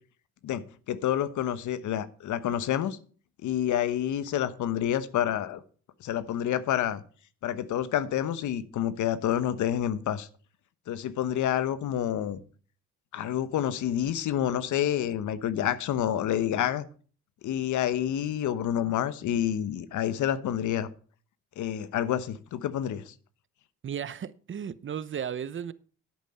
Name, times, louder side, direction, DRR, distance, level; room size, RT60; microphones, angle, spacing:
voice 1, 0.4-3.0 3.4-5.6 6.0-7.0 7.4-10.3 10.9-12.4 13.1-16.8 17.4-20.9 21.6-23.1, left 10 dB, 75° left, 1.1 m, -28 dB
voice 2, 23.8-25.7, right 8 dB, 40° right, 0.8 m, -35 dB
10.5 x 8.5 x 5.7 m
cardioid pair, 90°, 30 cm